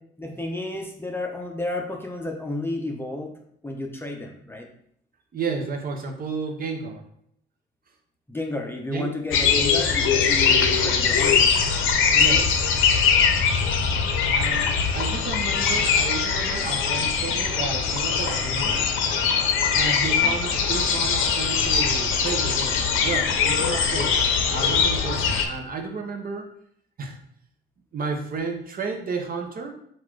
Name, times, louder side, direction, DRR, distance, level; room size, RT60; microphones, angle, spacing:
voice 1, 0.2-3.3 3.6-4.7 8.3-11.6 20.2-20.3, left 2 dB, 10° left, 1 dB, 0.7 m, -32 dB
voice 2, 5.3-7.0 8.9-9.1 12.1-12.6 14.3-18.9 19.7-24.2 24.5-26.5 27.0-27.2 27.9-29.7, right 4 dB, 45° right, 3 dB, 0.8 m, -32 dB
sound 1, 9.3-25.5, left 6 dB, 85° left, 0.6 m, -22 dB
4.0 x 2.5 x 4.6 m, 0.68 s
cardioid pair, 90°, 20 cm